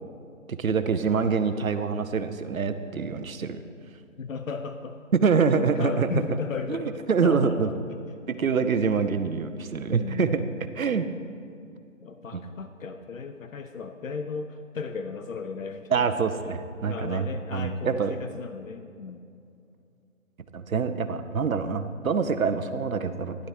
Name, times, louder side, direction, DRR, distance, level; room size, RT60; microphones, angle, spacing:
voice 1, 0.6-3.6 5.1-6.1 6.7-6.8 7.1-7.7 8.3-10.4 10.8-11.1 12.3-12.4 15.9-17.3 17.5-18.1 20.5-23.3, right 5 dB, 85° right, 9 dB, 0.8 m, -25 dB
voice 2, 4.2-5.0 5.7-8.0 9.9-10.3 12.0-16.2 16.8-19.2, left 5 dB, 75° left, 7 dB, 0.7 m, -35 dB
13.0 x 11.0 x 3.0 m, 2.5 s
figure-of-eight pair, 150°, 40 cm